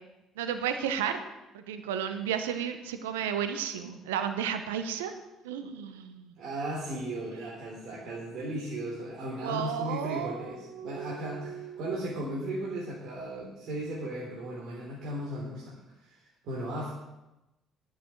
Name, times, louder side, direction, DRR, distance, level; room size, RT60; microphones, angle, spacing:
voice 1, 0.4-1.2 1.5-5.1 5.4-6.3 9.4-11.9, right 8 dB, 80° right, 9 dB, 0.9 m, -33 dB
voice 2, 6.4-16.9, right 1 dB, 60° right, -5 dB, 3.5 m, -36 dB
11.0 x 7.5 x 7.5 m, 0.97 s
hypercardioid pair, 50°, 0 cm